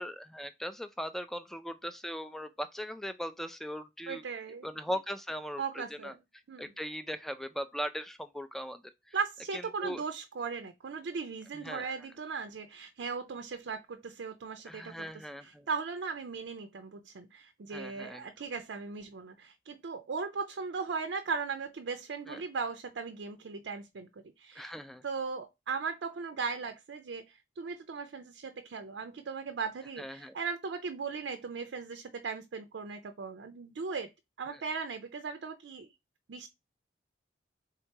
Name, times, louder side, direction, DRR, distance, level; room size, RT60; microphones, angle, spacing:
voice 1, 0.0-4.2 4.6-6.1 6.6-8.8 9.1-9.2 9.5-10.0 11.5-11.9 14.7-15.7 17.7-18.3 22.3-22.4 24.6-25.0 30.0-30.4 34.5-34.6, equal, ahead, 0.3 m, -39 dB
voice 2, 4.1-4.7 5.6-6.2 6.5-6.7 9.1-15.1 15.4-24.1 24.4-24.7 25.0-34.1 34.4-35.9 36.3-36.5, right 5 dB, 75° right, 0.4 m, -38 dB
3.6 x 2.9 x 4.4 m
head